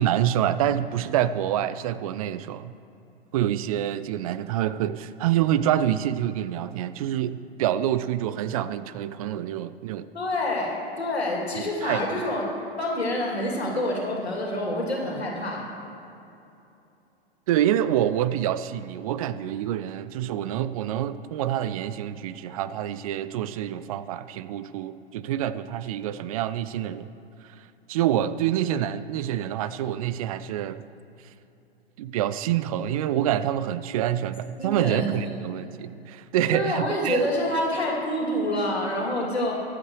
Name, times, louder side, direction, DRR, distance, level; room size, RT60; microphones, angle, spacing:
voice 1, 0.0-2.7 3.3-10.1 11.6-12.2 17.5-27.1 27.9-30.8 32.0-37.2, right 11 dB, 35° right, 15 dB, 0.4 m, -26 dB
voice 2, 10.1-12.4 12.8-15.7 34.6-35.1 36.5-39.5, left 1 dB, 80° left, -2 dB, 2.9 m, -27 dB
23.5 x 8.2 x 3.2 m, 2.8 s
figure-of-eight pair, 100°, 32 cm